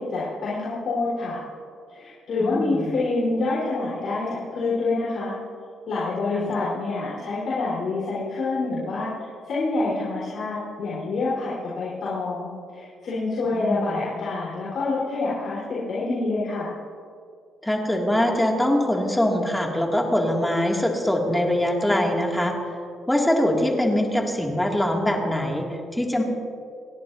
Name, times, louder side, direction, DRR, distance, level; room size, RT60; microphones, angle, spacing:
voice 1, 0.0-1.4 1.9-5.3 5.9-16.7, left 3 dB, 60° left, -8 dB, 4.2 m, -27 dB
voice 2, 2.4-2.8 6.3-6.5 13.5-14.0 17.6-22.6 23.1-26.2, left 1 dB, 5° left, 0 dB, 2.4 m, -23 dB
29.5 x 11.0 x 2.8 m, 2.3 s
cardioid pair, 90°, 0 cm